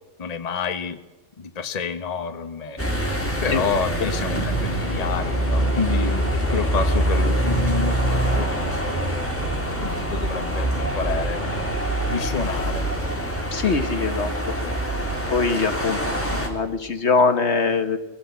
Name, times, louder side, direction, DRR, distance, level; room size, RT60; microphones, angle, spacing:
voice 1, 0.2-1.0 1.4-2.8 3.4-8.9 9.8-11.7 12.1-12.9 14.2-14.3 14.6-14.8, left 5 dB, 30° left, 7 dB, 1.1 m, -29 dB
sound 1, 2.8-16.5, right 1 dB, 10° left, 3.2 m, -24 dB
voice 2, 13.5-14.6 15.3-18.0, left 4 dB, 55° left, 9 dB, 1.4 m, -23 dB
21.5 x 16.5 x 8.2 m, 1.1 s
omnidirectional pair, 1.4 m